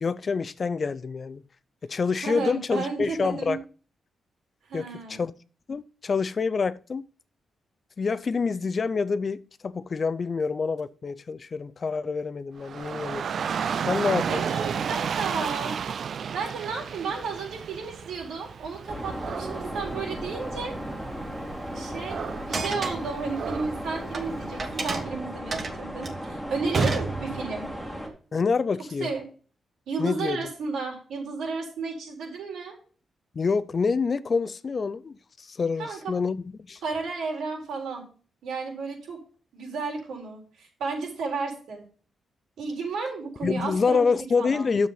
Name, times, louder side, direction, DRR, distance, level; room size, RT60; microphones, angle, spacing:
voice 1, 0.0-1.4 1.8-3.6 4.7-5.3 5.7-7.0 8.0-14.4 28.3-29.1 30.0-30.4 33.3-36.8 43.4-44.9, left 5 dB, 30° left, 0.4 m, -27 dB
voice 2, 2.2-3.6 4.7-5.2 14.3-15.8 16.3-20.7 21.7-27.7 29.0-29.2 29.9-32.8 35.8-36.1 36.8-38.1 38.4-39.2 39.5-41.8 42.6-44.0 44.4-44.7, right 4 dB, 80° right, 4.0 m, -33 dB
Dog / Rain, 12.6-24.8, right 7 dB, 50° right, 0.3 m, -33 dB
sound 1, 18.9-28.1, equal, 5° right, 2.3 m, -36 dB
sound 2, 22.5-24.2 24.6-27.7, right 3 dB, 35° right, 1.2 m, -30 dB
10.0 x 7.3 x 3.9 m
wide cardioid pair, 175°, 0 cm